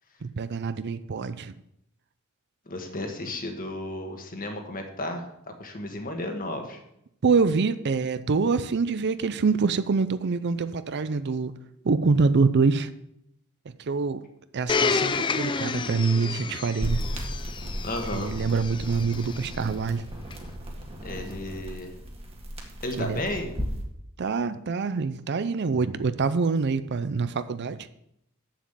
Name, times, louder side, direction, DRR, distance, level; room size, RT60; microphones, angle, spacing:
voice 1, 0.2-1.5 7.2-11.5 11.8-12.9 13.9-14.2 14.5-17.0 18.1-20.0 23.0-23.2 24.2-27.8, right 4 dB, 50° right, 13 dB, 0.5 m, -25 dB
voice 2, 2.7-6.8 17.8-18.3 21.0-21.9 22.8-23.5, left 1 dB, 40° left, 4 dB, 1.6 m, -33 dB
Domestic sounds home sounds, 14.7-19.5 20.3-20.4, left 4 dB, 20° left, 0.4 m, -30 dB
sound 1, 16.8-23.8, equal, 25° right, 1.8 m, -35 dB
7.4 x 7.1 x 7.4 m, 0.78 s
head